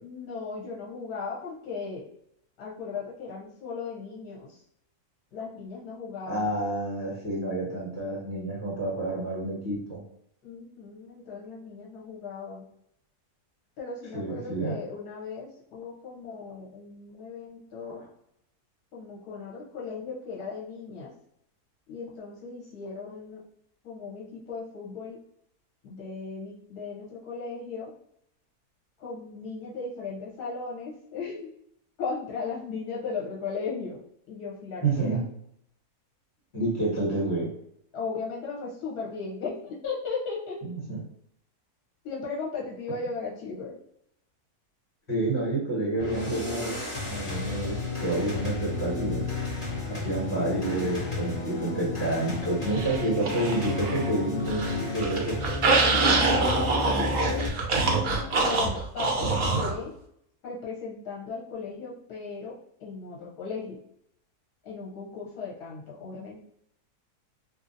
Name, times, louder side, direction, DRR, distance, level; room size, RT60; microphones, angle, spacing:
voice 1, 0.0-2.0 2.6-4.6 5.3-6.5 10.4-12.6 13.8-18.0 18.9-21.1 21.9-23.4 23.8-25.2 25.8-27.9 29.0-31.5 32.0-35.2 37.9-40.6 42.0-43.8 56.3-59.9 60.4-63.8 64.6-66.4, left 4 dB, 75° left, -3 dB, 1.3 m, -37 dB
voice 2, 6.2-10.0 14.1-14.7 34.8-35.2 36.5-37.5 40.6-41.0 45.1-46.8 47.1-49.3 49.9-55.4, right 2 dB, 50° left, -8 dB, 1.8 m, -29 dB
sound 1, 46.0-57.5, left 3 dB, 30° left, 0.6 m, -32 dB
sound 2, 52.7-54.1 54.4-59.7, right 3 dB, 60° right, 0.6 m, -25 dB
2.7 x 2.6 x 2.5 m, 0.72 s
omnidirectional pair, 1.7 m